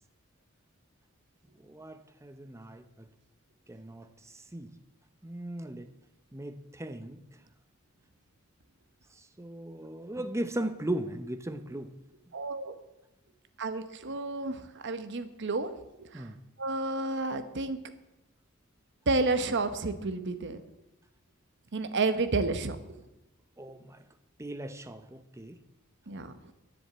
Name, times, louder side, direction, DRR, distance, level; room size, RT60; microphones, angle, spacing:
voice 1, 1.6-3.1 3.7-4.7 5.2-5.9 6.3-7.2 9.2-11.9 16.1-16.4 23.6-24.0 24.4-25.6, right 1 dB, 15° right, 10 dB, 0.7 m, -38 dB
voice 2, 12.3-12.8 13.6-15.7 16.0-16.2 16.6-17.8 19.1-20.6 21.7-22.8 26.1-26.3, right 3 dB, 55° right, 10 dB, 0.9 m, -30 dB
10.5 x 7.1 x 8.6 m, 0.95 s
head